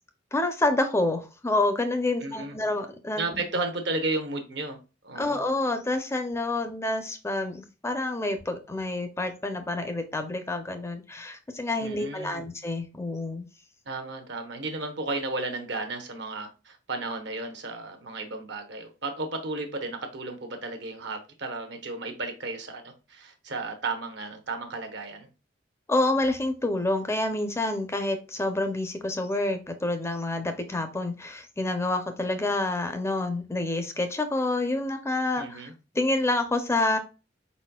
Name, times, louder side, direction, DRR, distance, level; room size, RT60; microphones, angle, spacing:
voice 1, 0.3-3.4 5.1-13.4 25.9-37.0, left 2 dB, 15° left, 0.5 m, -28 dB
voice 2, 2.2-2.6 3.2-4.8 5.0-5.4 11.8-12.5 13.9-25.3 35.4-35.7, right 3 dB, 65° right, 0.9 m, -33 dB
4.6 x 4.1 x 2.2 m
head